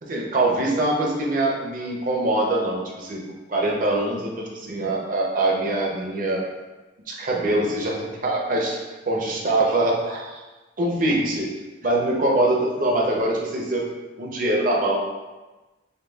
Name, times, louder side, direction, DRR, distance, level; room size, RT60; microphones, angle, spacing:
voice 1, 0.0-3.2 3.5-6.4 7.1-8.8 9.1-10.4 10.8-11.5 11.8-13.8 14.2-15.0, right 1 dB, 45° right, -1 dB, 0.6 m, -23 dB
6.5 x 2.3 x 2.3 m, 1.2 s
head